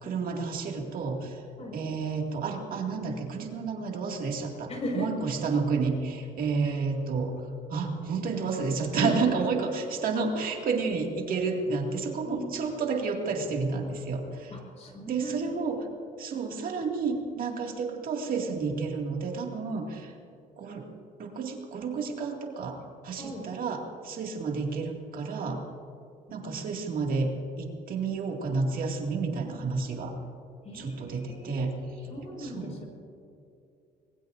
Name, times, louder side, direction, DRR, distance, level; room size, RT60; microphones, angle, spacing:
voice 1, 0.0-1.4 1.7-7.3 7.7-14.6 15.1-15.9 16.2-20.1 20.6-20.9 21.2-22.8 23.0-25.6 26.3-27.3 27.6-30.2 30.7-31.7 32.4-32.8, right 4 dB, 60° right, 1 dB, 2.1 m, -30 dB
voice 2, 4.7-5.1 8.9-9.1 12.2-12.6 14.5-15.7 23.2-23.4 30.6-31.7 32.1-32.9, equal, 40° left, 1 dB, 5.1 m, -37 dB
25.0 x 20.5 x 2.6 m, 2.6 s
cardioid pair, 110°, 17 cm